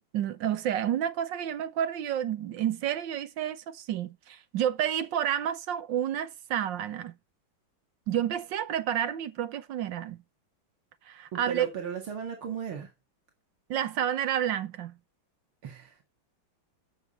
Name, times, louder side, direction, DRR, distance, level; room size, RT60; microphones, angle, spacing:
voice 1, 0.1-7.1 8.1-10.2 11.1-11.7 13.7-14.9, right 10 dB, 70° right, 1.5 m, -30 dB
voice 2, 11.3-12.9 15.6-16.0, right 7 dB, 85° right, 2.8 m, -36 dB
13.0 x 6.9 x 4.2 m
omnidirectional pair, 2.2 m